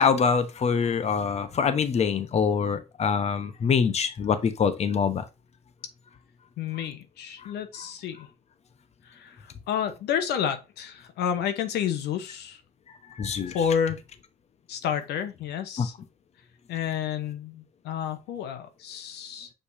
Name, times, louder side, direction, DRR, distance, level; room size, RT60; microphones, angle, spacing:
voice 1, 0.0-5.2 13.1-13.6 15.8-15.9, left 6 dB, 40° left, 1.1 m, -24 dB
voice 2, 6.6-8.3 9.1-12.6 13.5-14.0 14.7-15.9 16.7-19.5, left 8 dB, 80° left, 1.1 m, -30 dB
6.8 x 5.3 x 2.8 m
cardioid pair, 110°, 17 cm